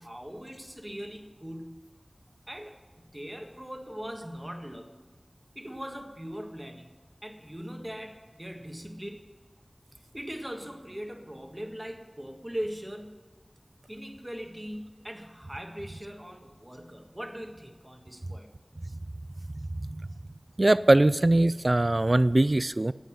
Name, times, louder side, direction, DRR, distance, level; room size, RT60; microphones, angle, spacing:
voice 1, 0.0-1.7 2.5-4.9 5.5-6.9 7.2-9.3 10.1-13.1 13.9-18.5, equal, 20° right, 3 dB, 1.6 m, -40 dB
voice 2, 19.7-20.1 20.6-22.9, right 2 dB, 55° right, 17 dB, 0.4 m, -22 dB
11.5 x 7.9 x 7.3 m, 1.3 s
wide cardioid pair, 45°, 0 cm